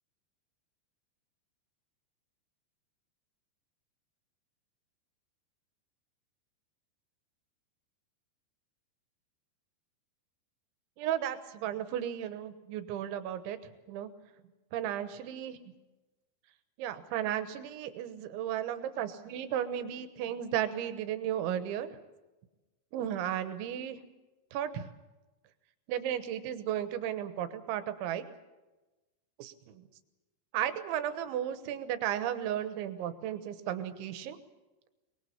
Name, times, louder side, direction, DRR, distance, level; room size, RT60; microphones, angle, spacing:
voice 1, 11.0-13.6 13.9-14.1 14.7-15.6 16.8-21.9 22.9-24.0 24.5-24.9 25.9-28.3 29.4-29.8 30.5-34.4, right 10 dB, 85° right, 11 dB, 3.5 m, -34 dB
23.5 x 20.5 x 7.0 m, 1.1 s
omnidirectional pair, 5.3 m